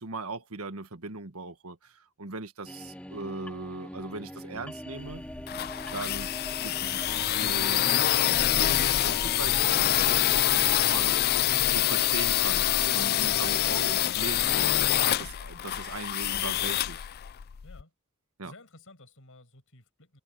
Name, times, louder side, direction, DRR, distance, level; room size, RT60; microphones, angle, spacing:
voice 1, 0.0-5.2 5.9-6.3 6.6-7.9 8.2-11.2 11.7-17.1 18.4-18.5, right 3 dB, 75° right, 1.6 m, -39 dB
sound 1, 2.7-11.0, equal, 5° left, 2.7 m, -42 dB
sound 2, 5.1-17.8, left 13 dB, 45° left, 0.4 m, -26 dB
voice 2, 17.6-17.9 18.4-20.2, left 2 dB, 65° left, 7.9 m, -53 dB
head